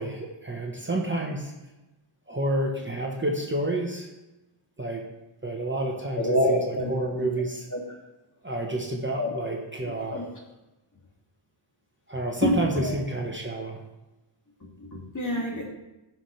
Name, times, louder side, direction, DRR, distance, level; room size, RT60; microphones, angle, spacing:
voice 1, 0.0-1.5 2.3-4.1 4.8-5.0 5.4-7.7 8.4-10.2 12.1-13.8, right 1 dB, 25° right, 0 dB, 1.2 m, -29 dB
voice 2, 6.2-6.9 7.2-7.3 7.7-7.8 9.2-9.3 9.8-10.2 12.4-12.9 14.8-15.7, left 1 dB, 35° left, -2 dB, 2.5 m, -26 dB
16.0 x 6.0 x 3.3 m, 1.0 s
wide cardioid pair, 100°, 49 cm